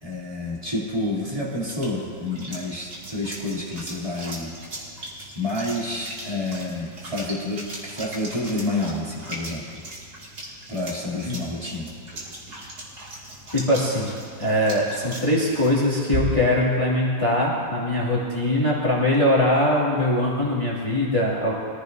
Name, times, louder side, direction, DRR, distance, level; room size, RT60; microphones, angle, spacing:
voice 1, 0.0-4.6 5.3-9.8 10.7-11.9, left 2 dB, 15° right, -6 dB, 2.9 m, -29 dB
sound 1, 1.1-16.6, right 2 dB, 55° right, 2.9 m, -38 dB
voice 2, 13.5-14.1 14.4-21.5, left 1 dB, 15° left, -6 dB, 2.2 m, -22 dB
23.5 x 14.5 x 2.7 m, 2.1 s
omnidirectional pair, 2.0 m